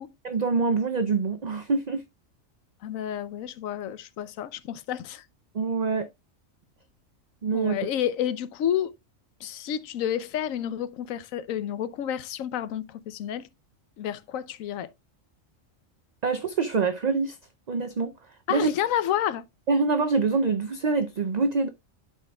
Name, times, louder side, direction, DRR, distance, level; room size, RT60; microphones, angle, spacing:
voice 1, 0.2-2.0 5.5-6.1 7.4-7.8 16.2-17.4 17.7-18.1 18.5-18.7 19.7-21.7, right 4 dB, 55° right, 0.4 m, -25 dB
voice 2, 2.8-5.2 7.5-8.9 9.4-13.4 14.0-14.9 18.5-19.4, left 10 dB, 85° left, 1.0 m, -30 dB
11.5 x 4.6 x 2.2 m
omnidirectional pair, 1.4 m